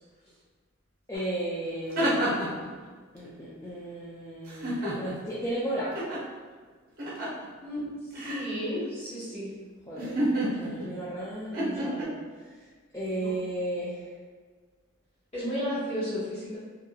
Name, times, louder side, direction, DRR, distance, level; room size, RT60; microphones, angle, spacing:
voice 1, 1.1-2.7 3.1-6.0 9.9-12.1 12.9-14.1, right 1 dB, 15° left, -8 dB, 0.3 m, -34 dB
sound 1, 1.1-1.2 1.6-2.6 4.5-5.3 5.9-6.2 7.0-7.4 8.1-8.5 10.0-10.9 11.5-12.0, right 1 dB, 45° right, 0.7 m, -29 dB
voice 2, 7.6-9.5 13.1-13.3 15.3-16.6, equal, 30° left, -11 dB, 1.5 m, -33 dB
2.8 x 2.6 x 2.4 m, 1.5 s
head